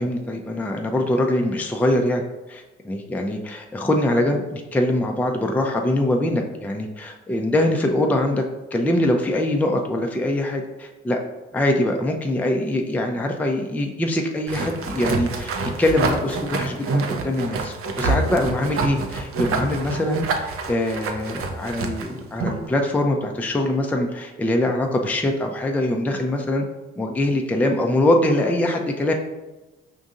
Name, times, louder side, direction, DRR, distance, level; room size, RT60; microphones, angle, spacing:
voice 1, 0.0-2.2 2.5-8.4 8.7-11.2 11.5-15.5 15.8-26.7 27.0-29.1, left 1 dB, 5° left, 2 dB, 0.4 m, -23 dB
sound 1, 14.5-22.7, right 3 dB, 50° right, 0.6 m, -27 dB
5.2 x 2.6 x 2.5 m, 1.1 s
hypercardioid pair, 50°, 30 cm